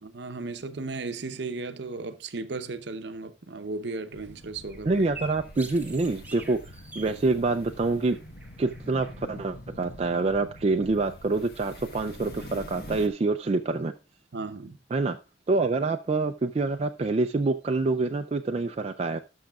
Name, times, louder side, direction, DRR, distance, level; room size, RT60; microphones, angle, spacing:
voice 1, 0.0-5.0 14.3-14.8, right 3 dB, 65° right, 0.7 m, -35 dB
sound 1, 3.6-10.3, right 2 dB, 10° right, 1.0 m, -49 dB
sound 2, 4.1-13.1, left 1 dB, 55° left, 1.4 m, -45 dB
voice 2, 4.8-6.6 7.0-8.2 8.6-13.9 14.9-15.2 15.5-19.2, right 3 dB, 35° right, 0.4 m, -26 dB
17.5 x 6.4 x 2.3 m
head